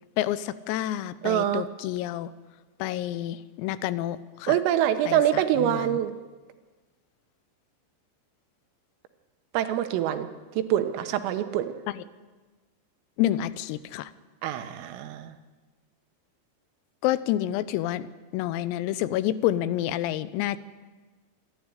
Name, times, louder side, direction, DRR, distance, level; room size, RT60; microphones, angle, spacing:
voice 1, 0.2-2.3 2.8-4.6 5.1-6.0 12.0-12.1 13.2-14.1 17.0-18.1 18.3-20.6, left 13 dB, 90° left, 15 dB, 3.5 m, -28 dB
voice 2, 1.2-1.7 4.5-6.1 9.5-10.3 10.6-11.7 14.4-15.4, right 11 dB, 80° right, 9 dB, 3.7 m, -25 dB
26.5 x 12.0 x 9.9 m, 1.3 s
omnidirectional pair, 5.9 m